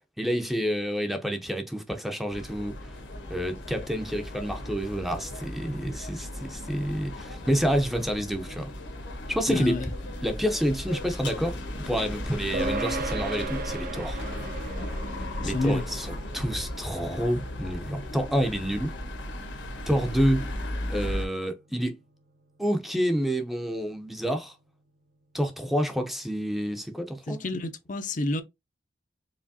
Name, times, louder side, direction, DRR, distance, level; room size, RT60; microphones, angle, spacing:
voice 1, 0.2-3.0 3.3-8.7 9.3-9.8 10.2-11.6 11.9-14.2 15.4-19.0 19.9-20.5 20.9-22.0 22.6-24.6 25.3-27.4, equal, ahead, 0.6 m, -28 dB
sound 1, 2.3-21.3, left 1 dB, 80° left, 1.3 m, -36 dB
voice 2, 9.5-9.9 15.4-15.8 27.3-28.4, left 2 dB, 45° left, 0.5 m, -29 dB
sound 2, 12.5-22.2, right 2 dB, 50° right, 0.6 m, -38 dB
4.8 x 3.0 x 2.7 m
head